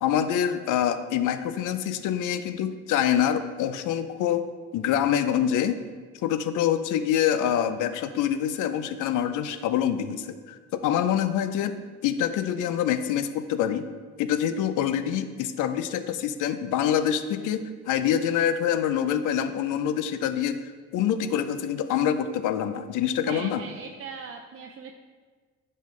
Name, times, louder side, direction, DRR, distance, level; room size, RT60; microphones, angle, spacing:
voice 1, 0.0-4.4 4.7-5.8 6.2-11.7 12.0-13.9 14.2-20.6 20.9-23.6, left 9 dB, 90° left, 11 dB, 0.5 m, -25 dB
voice 2, 23.3-24.9, right 6 dB, 50° right, 2 dB, 0.6 m, -39 dB
10.5 x 5.6 x 3.2 m, 1.5 s
cardioid pair, 90°, 30 cm